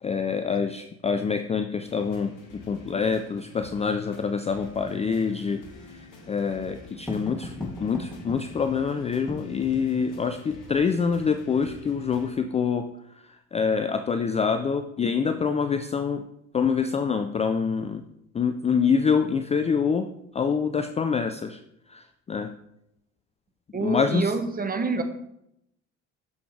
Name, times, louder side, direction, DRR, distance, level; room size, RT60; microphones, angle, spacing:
voice 1, 0.0-5.6 5.9-12.9 13.2-16.2 16.5-18.0 18.3-20.1 20.3-21.6 21.9-22.5 23.8-24.3, left 6 dB, 15° left, 8 dB, 0.4 m, -26 dB
sound 1, 1.8-12.3, left 3 dB, 50° left, 1.8 m, -48 dB
Writing, 4.9-10.8, left 1 dB, ahead, 2.7 m, -41 dB
voice 2, 23.7-25.0, right 4 dB, 20° right, 7 dB, 1.2 m, -27 dB
8.5 x 6.9 x 3.3 m, 0.80 s
figure-of-eight pair, 60°, 41 cm